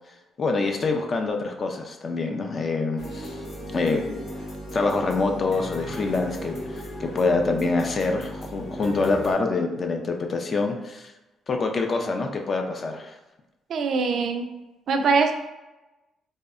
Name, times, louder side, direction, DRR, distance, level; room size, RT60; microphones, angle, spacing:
voice 1, 0.4-3.4 3.7-4.2 4.7-6.6 7.0-11.1 11.5-13.2, left 3 dB, 45° left, 3 dB, 0.3 m, -25 dB
sound 1, 3.0-9.3, equal, 75° left, 0.9 m, -36 dB
voice 2, 13.7-14.5 14.9-15.3, right 4 dB, 65° right, 5 dB, 0.3 m, -22 dB
2.6 x 2.1 x 2.4 m, 1.0 s
cardioid pair, 90°, 0 cm